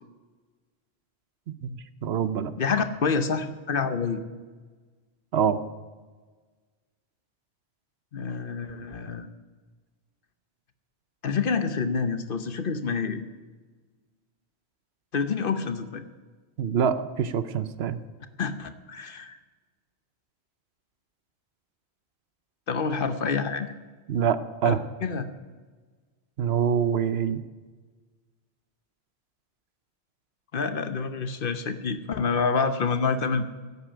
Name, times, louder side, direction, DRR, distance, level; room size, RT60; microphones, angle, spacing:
voice 1, 2.0-2.5 5.3-5.6 16.6-18.0 24.1-24.8 26.4-27.4, right 8 dB, 70° right, 14 dB, 0.9 m, -25 dB
voice 2, 2.6-4.2 8.1-9.3 11.2-13.2 15.1-16.0 18.4-19.4 22.7-23.7 24.6-24.7 25.0-25.3 30.5-33.5, left 5 dB, 55° left, 10 dB, 1.0 m, -27 dB
11.0 x 8.4 x 8.7 m, 1.4 s
omnidirectional pair, 1.1 m